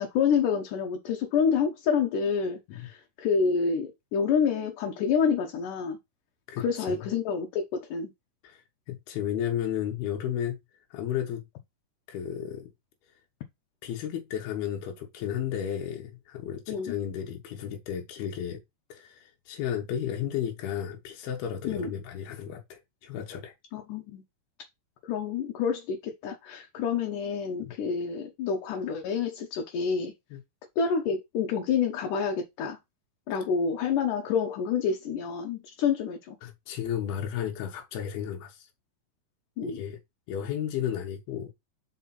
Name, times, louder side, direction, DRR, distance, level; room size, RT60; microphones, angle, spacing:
voice 1, 0.0-6.0 6.6-8.1 16.7-17.0 21.7-21.9 23.7-24.2 25.0-30.1 30.8-32.8 33.3-36.4 39.6-39.8, left 6 dB, 70° left, 2.4 m, -28 dB
voice 2, 6.5-7.1 8.4-8.6 8.9-10.6 10.9-11.4 12.1-12.7 13.8-18.6 18.9-23.5 27.6-27.7 30.3-30.4 36.4-38.7 39.6-40.0 40.3-41.5, left 9 dB, 85° left, 3.1 m, -33 dB
5.6 x 4.8 x 4.2 m
omnidirectional pair, 4.3 m